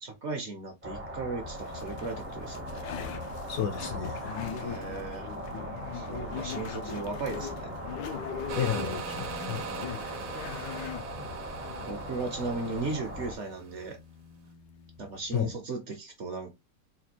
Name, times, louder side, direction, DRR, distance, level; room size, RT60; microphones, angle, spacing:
voice 1, 0.0-2.9 4.4-5.3 5.9-7.7 11.8-14.0 15.0-16.5, right 3 dB, 55° right, 0.9 m, -36 dB
sound 1, 0.8-13.3, equal, 15° right, 0.4 m, -39 dB
sound 2, 1.6-15.5, left 8 dB, 90° left, 1.3 m, -42 dB
voice 2, 3.5-4.4 8.6-9.7 10.3-10.6 15.3-15.5, left 8 dB, 70° left, 0.9 m, -32 dB
sound 3, 8.5-13.9, right 7 dB, 80° right, 1.3 m, -41 dB
4.2 x 2.3 x 2.9 m
omnidirectional pair, 1.8 m